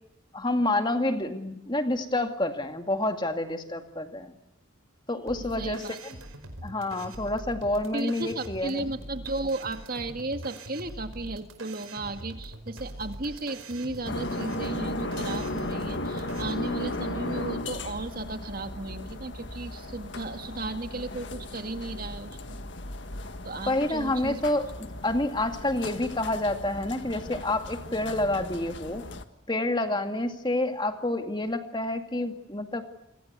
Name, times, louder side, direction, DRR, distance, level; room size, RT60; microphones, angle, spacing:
voice 1, 0.3-4.3 5.1-5.8 6.6-8.9 23.7-29.0 29.5-32.8, left 1 dB, 20° left, 6 dB, 2.2 m, -28 dB
sound 1, 5.3-16.5, right 1 dB, 90° right, 5.2 m, -43 dB
voice 2, 5.5-6.0 7.9-22.6 23.4-24.4, right 2 dB, 45° right, 7 dB, 2.1 m, -35 dB
sound 2, 14.1-29.2, left 1 dB, 55° left, 1.8 m, -36 dB
28.0 x 24.5 x 8.2 m, 0.86 s
head